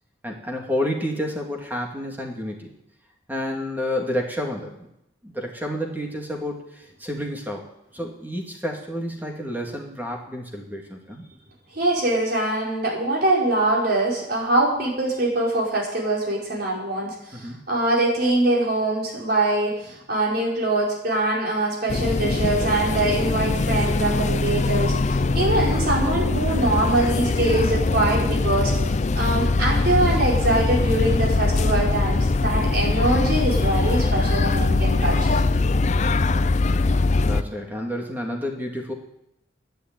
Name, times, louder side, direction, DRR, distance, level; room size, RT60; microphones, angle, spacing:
voice 1, 0.2-2.7 3.3-4.9 5.2-7.6 7.9-11.2 17.3-17.6 30.4-30.7 37.2-38.9, left 1 dB, 10° right, 1 dB, 2.5 m, -30 dB
voice 2, 11.7-28.7 29.1-35.4, right 2 dB, 55° right, -3 dB, 5.2 m, -23 dB
sound 1, 21.9-37.4, left 3 dB, 40° left, 0.5 m, -22 dB
11.0 x 10.5 x 9.0 m, 0.80 s
head